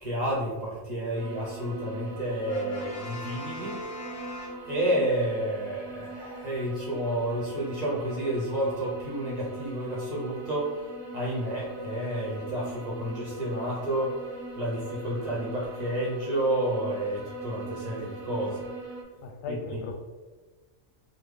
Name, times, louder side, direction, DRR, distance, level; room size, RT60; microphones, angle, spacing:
voice 1, 0.0-3.8 4.7-10.8 11.1-14.2 14.6-18.7 19.5-19.8, right 1 dB, 45° right, -5 dB, 0.6 m, -30 dB
sound 1, 1.1-19.0, right 2 dB, 85° right, 1.0 m, -41 dB
Brass instrument, 2.5-5.1, left 1 dB, 50° left, 0.6 m, -40 dB
voice 2, 19.2-19.9, left 3 dB, 85° left, 2 dB, 1.0 m, -37 dB
3.5 x 2.1 x 3.2 m, 1.3 s
omnidirectional pair, 1.3 m